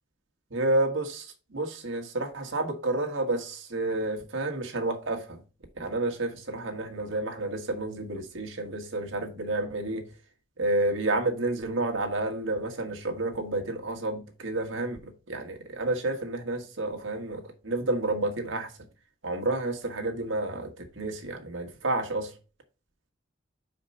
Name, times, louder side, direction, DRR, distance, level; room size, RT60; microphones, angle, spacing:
voice 1, 0.5-5.4 5.8-10.0 10.6-18.7 19.2-22.3, right 2 dB, 75° right, 1.6 m, -30 dB
5.4 x 5.0 x 5.4 m
head